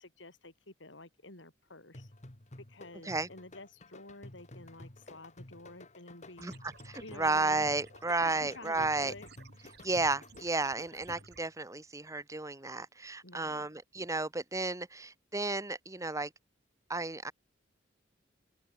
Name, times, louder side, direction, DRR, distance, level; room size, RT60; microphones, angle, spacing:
voice 1, 0.0-2.1 2.7-6.5 7.0-7.7 8.2-9.3 9.6-9.8 13.2-13.7, left 2 dB, 70° left, 4.6 m, -50 dB
sound 1, 1.9-11.5, left 1 dB, 40° left, 2.2 m, -52 dB
sound 2, 6.4-11.4, right 5 dB, 60° right, 3.1 m, -57 dB
voice 2, 6.8-9.1 9.8-16.3 16.9-17.3, right 3 dB, 15° right, 1.4 m, -33 dB
open air
head